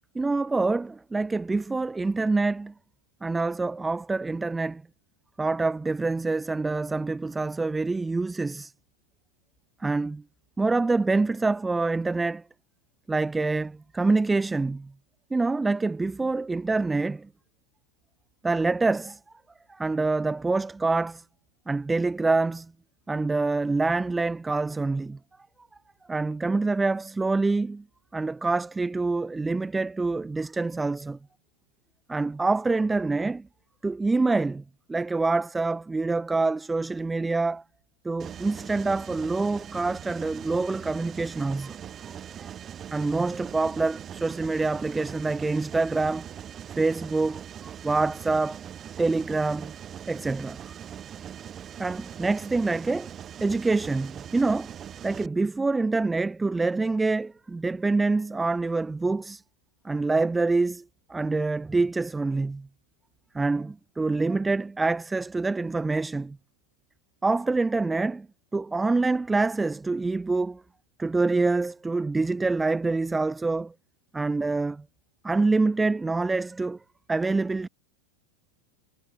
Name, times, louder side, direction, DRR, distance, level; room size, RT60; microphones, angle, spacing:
voice 1, 0.1-2.7 3.2-4.8 5.4-8.7 9.8-10.2 10.6-12.4 13.1-14.9 15.3-17.3 18.4-19.2 19.7-21.2 21.7-22.7 23.1-25.2 26.1-27.8 28.1-31.2 32.1-33.4 33.8-34.6 34.9-37.6 38.0-41.8 42.4-42.5 42.9-46.3 46.8-48.6 49.0-49.7 50.1-50.7 51.8-53.1 53.4-54.7 55.0-59.4 59.8-60.8 61.1-62.7 63.3-66.4 67.2-68.3 68.5-70.6 71.0-73.7 74.1-74.8 75.2-76.8 77.1-77.7, right 3 dB, 10° right, 0.6 m, -26 dB
Mechanisms, 38.2-55.3, right 9 dB, 25° right, 4.8 m, -41 dB
figure-of-eight pair, 90°, 0 cm